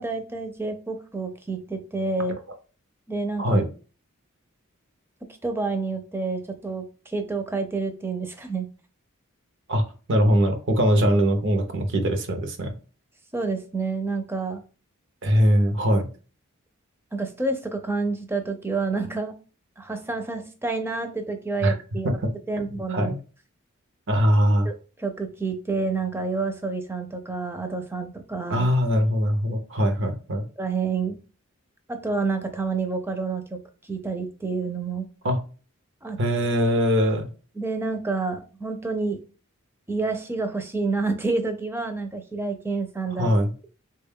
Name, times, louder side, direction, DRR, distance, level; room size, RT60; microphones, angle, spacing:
voice 1, 0.0-2.4 3.1-3.6 5.4-8.7 13.3-14.6 17.1-19.3 19.8-22.1 22.5-23.1 24.6-28.7 30.6-31.2 31.9-35.1 36.0-36.2 37.6-39.2 39.9-43.3, right 3 dB, 10° right, 6 dB, 0.4 m, -28 dB
voice 2, 10.1-12.7 15.2-16.1 21.6-21.7 22.0-22.1 22.7-23.2 24.1-24.7 28.5-30.4 35.2-35.4 36.2-37.3 43.2-43.5, equal, 60° right, 5 dB, 0.6 m, -21 dB
3.4 x 2.2 x 3.5 m, 0.36 s
head